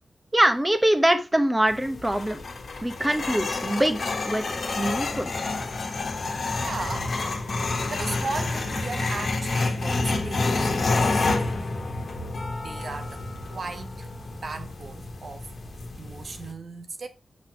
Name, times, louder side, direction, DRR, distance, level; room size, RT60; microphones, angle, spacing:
voice 1, 0.3-2.4 2.8-5.3, right 1 dB, 10° right, 1.1 m, -23 dB
sound 1, 1.7-16.5, left 3 dB, 65° left, 1.4 m, -29 dB
voice 2, 6.6-7.4 7.9-11.7 12.6-13.2 13.5-14.1 14.4-15.5 16.0-17.1, right 3 dB, 60° right, 0.9 m, -36 dB
6.6 x 5.3 x 4.5 m
wide cardioid pair, 95°, 0 cm